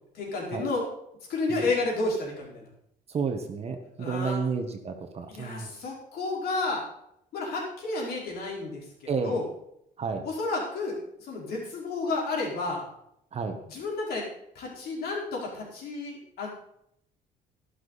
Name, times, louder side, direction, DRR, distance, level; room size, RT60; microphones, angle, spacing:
voice 1, 0.1-0.8 1.3-2.7 4.0-4.5 5.3-6.8 7.3-9.5 10.2-12.8 13.7-14.2 14.5-16.5, left 3 dB, 65° left, -2 dB, 5.0 m, -31 dB
voice 2, 3.1-5.7 9.1-9.4 10.0-10.2 13.3-13.6, right 5 dB, 40° right, 5 dB, 1.4 m, -31 dB
12.0 x 12.0 x 4.2 m, 0.74 s
cardioid pair, 110°, 17 cm